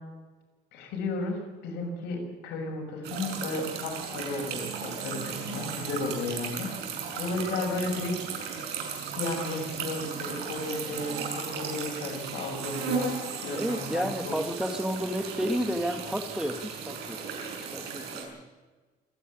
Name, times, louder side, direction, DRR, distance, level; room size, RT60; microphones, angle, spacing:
voice 1, 0.7-6.7 7.2-8.1 8.9-13.1 13.4-14.3, left 2 dB, 90° left, 1 dB, 6.6 m, -34 dB
sound 1, 3.0-18.2, right 6 dB, 80° right, 6.1 m, -36 dB
voice 2, 13.5-18.4, equal, 5° right, 7 dB, 1.7 m, -32 dB
27.0 x 10.0 x 9.9 m, 1.3 s
cardioid pair, 110°, 17 cm